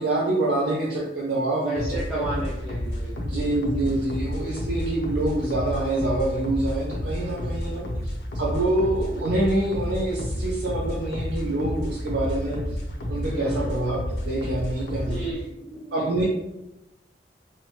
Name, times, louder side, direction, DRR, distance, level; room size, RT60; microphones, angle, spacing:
voice 1, 0.0-2.4 3.2-12.6 13.1-14.0 14.2-15.3 15.9-16.2, right 2 dB, 70° right, -6 dB, 0.5 m, -26 dB
voice 2, 1.6-3.5 7.2-7.6 13.4-13.8 15.1-16.2, right 1 dB, ahead, -8 dB, 0.3 m, -34 dB
sound 1, 1.7-15.3, equal, 65° left, 0.4 m, -31 dB
2.8 x 2.1 x 2.9 m, 0.91 s
head